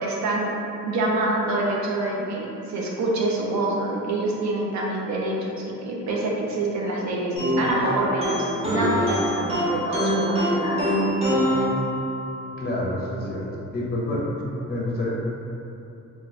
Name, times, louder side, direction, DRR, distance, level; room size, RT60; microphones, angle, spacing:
voice 1, 0.0-0.5 0.8-10.8, right 2 dB, 65° right, -3 dB, 0.6 m, -26 dB
sound 1, 7.4-12.4, equal, 20° right, 0.7 m, -24 dB
voice 2, 12.6-13.4 13.7-14.2 14.7-15.1, left 1 dB, 30° left, -4 dB, 0.5 m, -27 dB
2.3 x 2.2 x 3.9 m, 2.9 s
cardioid pair, 140°, 30 cm